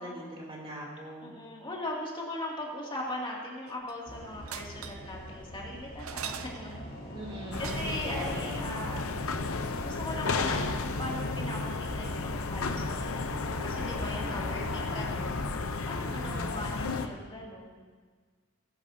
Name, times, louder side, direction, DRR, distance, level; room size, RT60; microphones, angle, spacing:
voice 1, 0.0-1.3 7.1-7.7 8.0-8.6 16.2-16.6, right 1 dB, 25° right, -2 dB, 3.2 m, -40 dB
voice 2, 1.2-6.8 7.6-9.0 9.8-15.5 15.9-17.9, left 1 dB, 25° left, -3 dB, 2.5 m, -39 dB
sound 1, 3.7-4.1 4.4-5.1 6.0-6.9 7.5-8.2 10.3-10.4 10.6-10.7, right 8 dB, 75° right, 0.6 m, -42 dB
sound 2, 4.1-15.3, equal, 55° left, 3.9 m, -42 dB
sound 3, 7.5-17.1, left 3 dB, 80° left, 0.8 m, -33 dB
20.0 x 11.0 x 2.8 m, 1.5 s
head